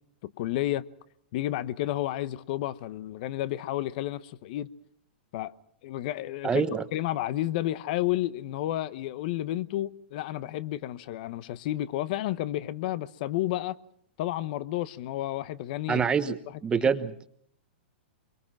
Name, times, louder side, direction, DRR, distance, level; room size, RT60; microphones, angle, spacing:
voice 1, 0.2-0.8 1.3-4.7 5.3-5.5 5.8-13.8 14.2-16.0 16.5-16.9, left 14 dB, 55° left, 1.0 m, -31 dB
voice 2, 6.4-6.8 15.9-16.4 16.6-17.3, right 6 dB, 15° right, 1.0 m, -25 dB
24.5 x 23.0 x 6.0 m
hypercardioid pair, 135°, 6 cm